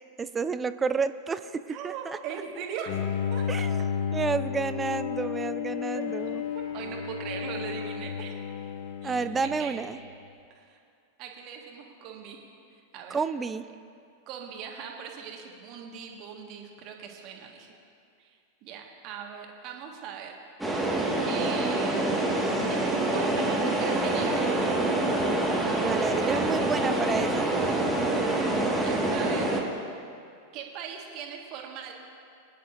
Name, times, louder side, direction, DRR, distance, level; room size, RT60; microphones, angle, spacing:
voice 1, 0.2-2.2 3.5-3.9 4.1-6.4 9.0-10.0 13.1-13.6 25.8-27.5, right 5 dB, 15° right, 13 dB, 0.4 m, -30 dB
voice 2, 1.7-3.0 3.3-3.4 5.9-6.0 6.5-8.4 9.0-9.8 10.5-10.8 11.2-12.4 12.7-13.2 14.3-17.7 18.2-20.3 21.2-22.4 22.6-24.5 26.0-26.9 28.8-29.5 30.5-31.9, right 7 dB, 40° right, 1 dB, 1.7 m, -40 dB
Bowed string instrument, 2.9-10.1, left 7 dB, 45° left, 0.6 m, -32 dB
sound 1, 20.6-29.6, right 2 dB, ahead, 1.8 m, -26 dB
24.0 x 10.0 x 2.7 m, 2.4 s
figure-of-eight pair, 90°, 0 cm